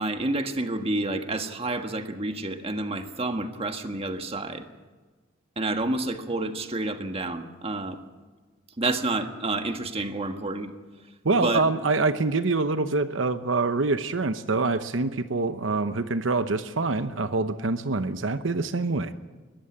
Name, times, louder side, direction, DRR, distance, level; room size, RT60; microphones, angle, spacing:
voice 1, 0.0-4.7 5.6-8.0 8.8-10.7 11.4-11.6, right 2 dB, 30° right, 6 dB, 1.6 m, -29 dB
voice 2, 11.2-19.1, right 3 dB, 85° right, 10 dB, 0.9 m, -25 dB
21.5 x 14.5 x 8.6 m, 1.3 s
head